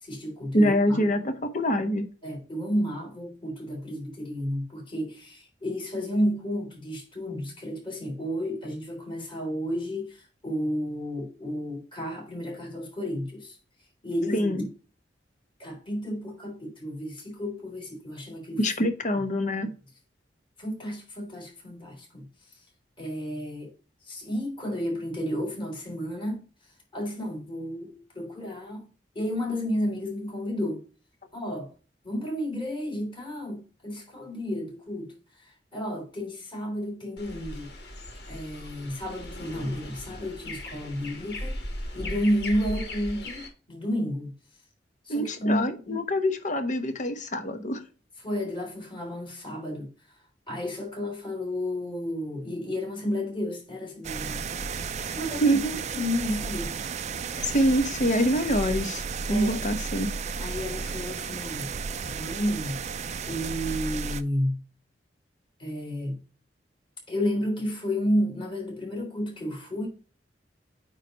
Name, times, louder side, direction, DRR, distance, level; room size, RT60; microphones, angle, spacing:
voice 1, 0.0-1.2 2.2-13.6 14.0-14.7 15.6-19.2 20.6-22.3 23.0-23.7 24.1-26.4 26.9-28.9 29.1-30.8 31.3-31.7 32.0-35.1 35.7-37.7 38.3-41.6 41.9-44.3 45.1-46.0 48.2-49.9 50.5-54.4 55.2-55.6 55.9-56.7 59.3-59.6 60.4-61.7 62.0-62.8 63.3-64.6 65.6-66.2 67.1-69.9, equal, 30° left, 3.7 m, -31 dB
voice 2, 0.5-2.0 14.3-14.6 18.6-19.7 45.1-47.8 55.4-55.8 57.5-59.0 59.3-60.1, equal, 45° left, 1.1 m, -25 dB
sound 1, 37.2-43.5, left 1 dB, 65° left, 2.4 m, -38 dB
sound 2, 54.0-64.2, right 5 dB, 40° right, 0.5 m, -33 dB
9.1 x 3.2 x 5.2 m
head